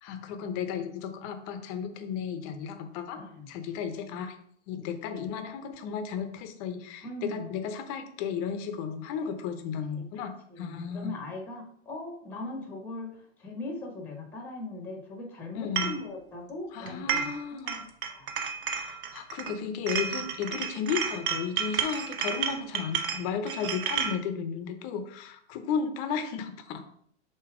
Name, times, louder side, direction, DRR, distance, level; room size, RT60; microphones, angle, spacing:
voice 1, 0.0-4.4 4.7-11.2 15.5-15.9 16.7-17.9 18.7-26.8, left 7 dB, 30° left, 8 dB, 0.7 m, -34 dB
voice 2, 3.2-3.5 7.0-7.5 10.5-17.3 18.1-18.4, left 2 dB, 5° left, 2 dB, 0.9 m, -39 dB
sound 1, 15.8-16.0 16.9-17.4 17.7-19.5 19.9-24.2, right 7 dB, 45° right, 0.8 m, -31 dB
7.0 x 2.8 x 4.8 m, 0.65 s
hypercardioid pair, 145°, 36 cm